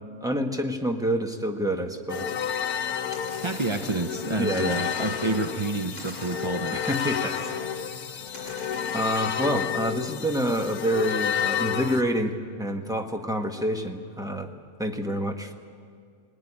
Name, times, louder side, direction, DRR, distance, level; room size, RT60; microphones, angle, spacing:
voice 1, 0.2-2.3 3.9-4.0 4.4-5.1 6.7-7.5 8.9-14.5 14.8-15.5, equal, 5° right, 4 dB, 1.1 m, -28 dB
sound 1, 2.1-12.0, left 8 dB, 85° left, 1.4 m, -30 dB
sound 2, 3.1-4.1 4.6-5.7 6.0-7.7 8.3-9.3, left 1 dB, 55° left, 6.3 m, -43 dB
voice 2, 3.4-6.8, right 3 dB, 45° right, 7 dB, 0.4 m, -29 dB
19.5 x 17.0 x 9.9 m, 2.2 s
omnidirectional pair, 1.6 m